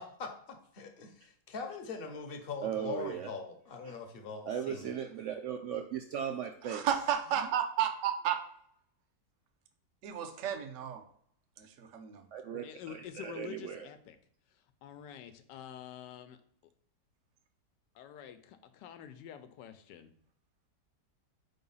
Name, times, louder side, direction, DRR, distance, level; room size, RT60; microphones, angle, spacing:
voice 1, 0.0-4.9, left 4 dB, 45° left, 4 dB, 0.8 m, -42 dB
voice 2, 2.6-3.3 3.8-3.9 4.5-6.9 7.4-7.5 12.3-13.9, right 8 dB, 85° right, 5 dB, 0.6 m, -37 dB
voice 3, 6.6-8.4 10.0-11.0 11.6-12.2, right 9 dB, 60° right, 5 dB, 0.9 m, -32 dB
voice 4, 12.6-14.2 14.8-16.4 17.9-20.1, left 9 dB, 80° left, 9 dB, 1.3 m, -47 dB
4.8 x 3.9 x 5.4 m, 0.68 s
omnidirectional pair, 1.8 m